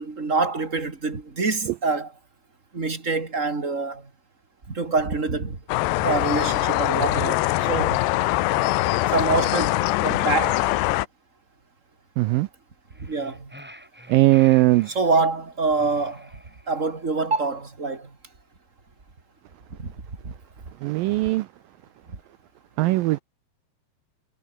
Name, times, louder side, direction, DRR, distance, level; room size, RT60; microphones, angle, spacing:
voice 1, 0.0-2.1 2.7-4.1 4.7-5.6 6.0-8.0 9.1-10.6 13.0-13.5 14.9-16.3 16.7-18.1 19.8-19.9 20.2-20.3, right 3 dB, 20° right, 2.5 m, -25 dB
sound 1, 5.7-11.1, left 18 dB, 85° left, 3.0 m, -23 dB
voice 2, 12.2-12.5 14.1-14.9 20.8-21.5 22.8-23.2, right 19 dB, 85° right, 2.0 m, -19 dB
sound 2, 12.9-15.1 15.7-17.0, equal, ahead, 5.9 m, -47 dB
omnidirectional pair, 4.8 m